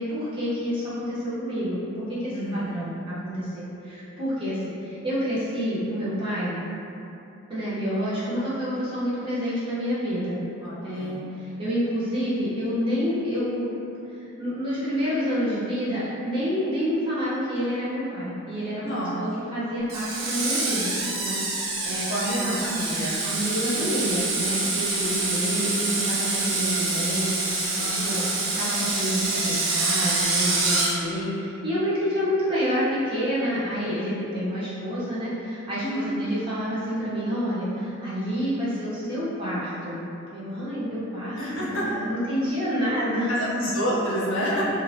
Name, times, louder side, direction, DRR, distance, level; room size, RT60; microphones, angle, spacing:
voice 1, 0.0-6.6 7.5-10.4 10.8-13.7 14.1-22.6 23.2-40.0 40.3-43.3, equal, 25° right, -10 dB, 0.7 m, -28 dB
voice 2, 2.3-2.8 10.6-11.2 18.8-19.2 22.1-23.2 27.8-28.3 35.8-36.1 41.3-41.9 43.3-44.6, equal, 65° left, -6 dB, 0.7 m, -28 dB
Screech, 19.9-30.9, right 2 dB, 85° right, 0.5 m, -26 dB
2.7 x 2.4 x 3.2 m, 2.8 s
head